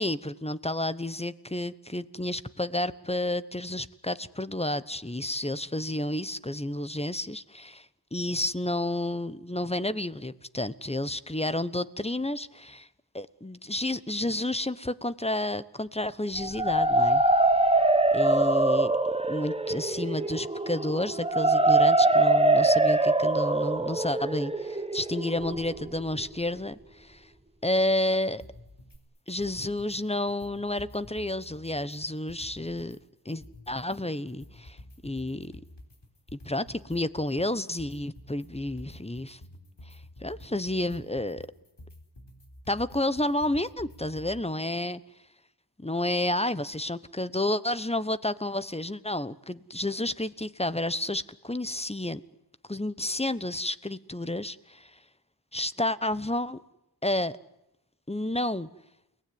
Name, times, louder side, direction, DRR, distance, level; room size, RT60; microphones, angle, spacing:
voice 1, 0.0-7.8 8.1-12.9 13.1-17.2 18.1-18.9 19.3-27.2 27.6-28.4 29.3-33.0 33.2-34.8 35.0-35.5 36.3-39.4 40.2-41.5 42.7-45.0 45.8-52.2 52.7-54.9 55.5-56.6 57.0-57.4 58.1-58.7, left 1 dB, 15° left, 14 dB, 1.1 m, -30 dB
sound 1, 16.4-26.2, right 2 dB, 15° right, 1.2 m, -23 dB
sound 2, 28.4-29.0 29.3-30.0 30.3-33.0 33.3-44.4, left 1 dB, 75° left, 4.1 m, -49 dB
30.0 x 19.0 x 9.6 m, 0.88 s
wide cardioid pair, 55°, 42 cm